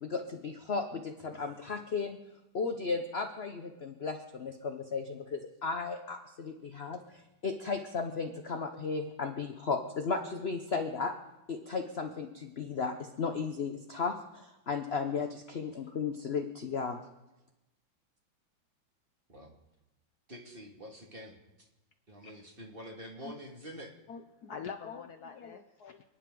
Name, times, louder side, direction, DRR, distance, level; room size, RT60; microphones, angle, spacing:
voice 1, 0.0-2.2 2.5-11.1 11.5-17.0, left 4 dB, 45° left, 5 dB, 0.8 m, -35 dB
voice 2, 20.3-21.4 22.1-23.9, equal, 30° right, 0 dB, 2.2 m, -46 dB
voice 3, 24.1-26.0, left 6 dB, 60° left, 7 dB, 1.1 m, -44 dB
29.0 x 10.5 x 3.8 m, 0.98 s
omnidirectional pair, 2.2 m